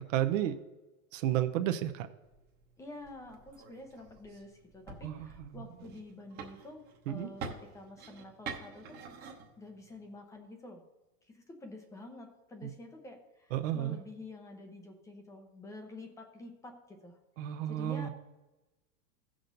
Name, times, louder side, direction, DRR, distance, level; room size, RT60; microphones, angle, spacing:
voice 1, 0.1-0.6 1.1-2.1 5.0-5.3 7.1-7.3 12.6-12.7 13.5-14.0 17.4-18.1, right 12 dB, 55° right, 7 dB, 0.8 m, -31 dB
sound 1, 2.2-10.2, right 5 dB, 20° right, 1.0 m, -48 dB
voice 2, 2.8-9.0 9.6-10.8 11.2-17.2 17.7-18.1, left 2 dB, 5° left, 4 dB, 0.6 m, -48 dB
15.0 x 6.3 x 3.9 m, 1.1 s
supercardioid pair, 160°, 46 cm